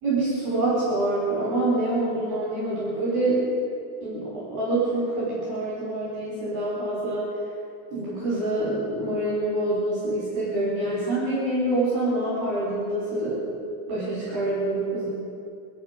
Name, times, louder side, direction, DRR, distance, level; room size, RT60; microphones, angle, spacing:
voice 1, 0.0-3.5 4.0-7.3 7.9-13.4 13.9-15.1, right 2 dB, 55° right, -8 dB, 5.5 m, -26 dB
26.5 x 9.4 x 5.1 m, 2.5 s
omnidirectional pair, 5.5 m